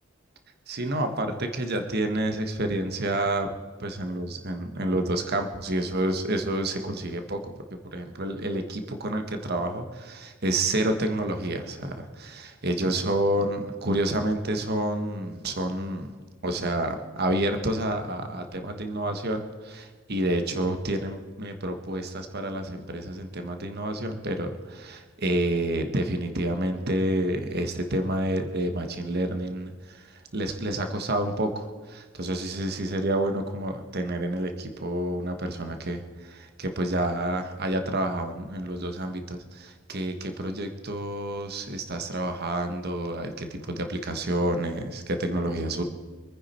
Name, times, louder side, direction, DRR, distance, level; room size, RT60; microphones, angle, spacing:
voice 1, 0.7-7.5 7.8-16.1 16.4-45.8, right 1 dB, 50° right, 6 dB, 1.4 m, -29 dB
25.5 x 9.8 x 4.4 m, 1.4 s
head